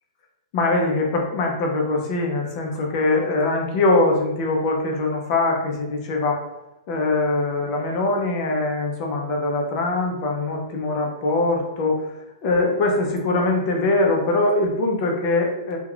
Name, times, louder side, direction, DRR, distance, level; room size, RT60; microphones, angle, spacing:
voice 1, 0.5-6.5 6.9-12.0 12.4-15.8, left 2 dB, 30° left, 1 dB, 0.5 m, -22 dB
2.2 x 2.2 x 3.6 m, 0.89 s
hypercardioid pair, 170°, 4 cm